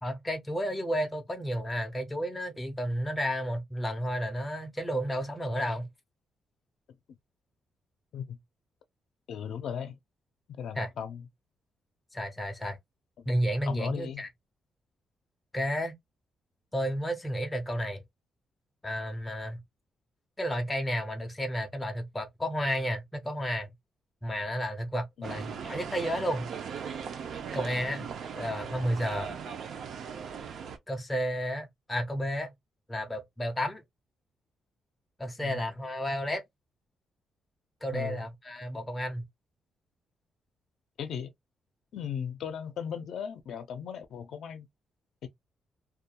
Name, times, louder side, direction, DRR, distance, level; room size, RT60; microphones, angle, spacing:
voice 1, 0.0-5.9 10.8-10.9 12.1-12.8 13.3-14.3 15.5-15.9 16.7-18.0 18.8-19.6 20.4-23.7 24.2-26.5 27.5-28.1 28.4-29.3 30.9-32.5 32.9-33.8 35.2-36.4 37.8-39.3, equal, 10° left, 0.5 m, -32 dB
voice 2, 9.3-10.0 10.6-11.3 13.2-13.3 13.6-14.2 25.2-25.4 35.4-35.6 37.9-38.2 41.0-41.3 41.9-44.7 45.2-45.3, left 8 dB, 65° left, 0.4 m, -37 dB
sound 1, 25.2-30.8, right 7 dB, 55° right, 0.4 m, -38 dB
2.3 x 2.2 x 2.8 m
wide cardioid pair, 180°, 0 cm